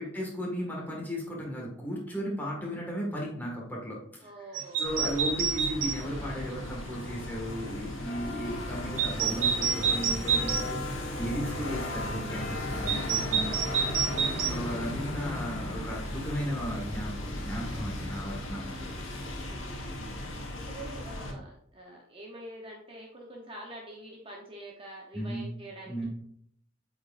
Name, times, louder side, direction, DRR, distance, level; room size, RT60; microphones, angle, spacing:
voice 1, 0.0-10.8 11.1-13.5 14.4-18.6 20.0-20.3 25.1-25.4 25.8-26.1, equal, 10° left, -3 dB, 1.7 m, -35 dB
voice 2, 4.2-4.9 13.6-14.7 18.8-26.1, right 1 dB, 30° right, -1 dB, 0.9 m, -46 dB
sound 1, 4.5-6.0 9.0-10.7 12.9-14.6, right 7 dB, 80° right, 0.6 m, -28 dB
sound 2, 4.8-21.3, left 1 dB, 75° left, 1.3 m, -36 dB
8.2 x 4.7 x 2.5 m, 0.68 s
head